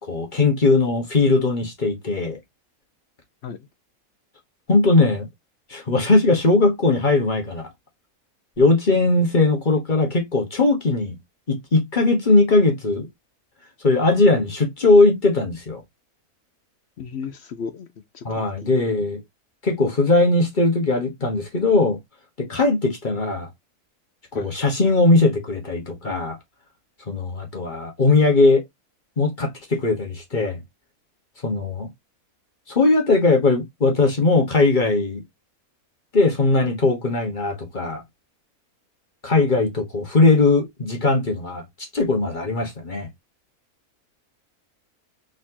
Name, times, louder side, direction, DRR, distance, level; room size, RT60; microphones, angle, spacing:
voice 1, 0.0-2.4 4.7-5.3 5.7-7.7 8.6-11.2 11.5-13.1 13.8-15.8 18.2-19.2 19.6-22.0 22.4-23.5 24.3-26.4 27.1-28.6 29.2-30.6 31.4-31.9 32.7-35.2 36.1-38.0 39.2-41.6 41.9-43.1, left 3 dB, 35° left, 1.3 m, -19 dB
voice 2, 17.0-17.9 18.1-18.7 24.3-24.5, left 6 dB, 60° left, 0.7 m, -34 dB
4.2 x 3.8 x 2.8 m
omnidirectional pair, 1.6 m